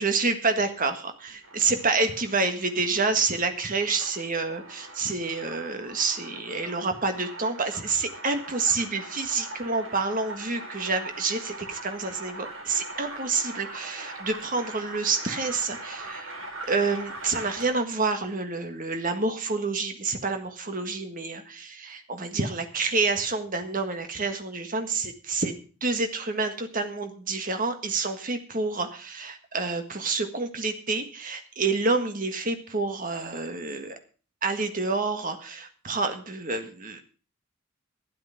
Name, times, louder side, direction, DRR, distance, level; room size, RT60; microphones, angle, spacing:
voice 1, 0.0-16.3 16.7-34.0 34.4-37.0, right 3 dB, 40° right, 7 dB, 1.7 m, -28 dB
sound 1, 1.3-17.9, right 2 dB, 80° right, 5.3 m, -42 dB
12.5 x 11.0 x 5.8 m, 0.38 s
head